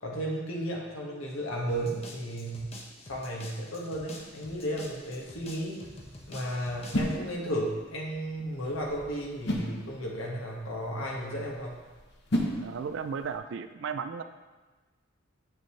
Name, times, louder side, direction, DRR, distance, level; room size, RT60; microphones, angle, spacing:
voice 1, 0.0-2.7 3.0-5.9 6.3-11.8, right 1 dB, 85° left, -2 dB, 1.6 m, -34 dB
sound 1, 1.7-7.2, left 2 dB, 30° left, 0.8 m, -48 dB
sound 2, 4.1-13.4, equal, 55° left, 1.0 m, -37 dB
voice 2, 12.6-14.2, right 6 dB, 65° right, 10 dB, 0.3 m, -35 dB
8.3 x 6.5 x 3.2 m, 1.2 s
head